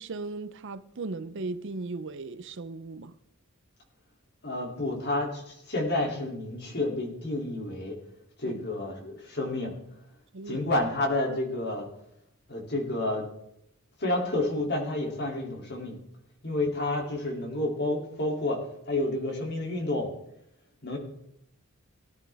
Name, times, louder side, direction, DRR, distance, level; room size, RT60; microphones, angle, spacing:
voice 1, 0.0-3.1 8.5-8.6 10.3-10.6, right 3 dB, 55° right, 0.6 m, -37 dB
voice 2, 4.4-8.0 8.4-9.7 10.5-11.9 12.5-13.3 14.0-16.0 16.4-18.6 18.9-20.1 20.8-21.0, left 2 dB, 50° left, 2.9 m, -30 dB
18.5 x 11.0 x 3.5 m
head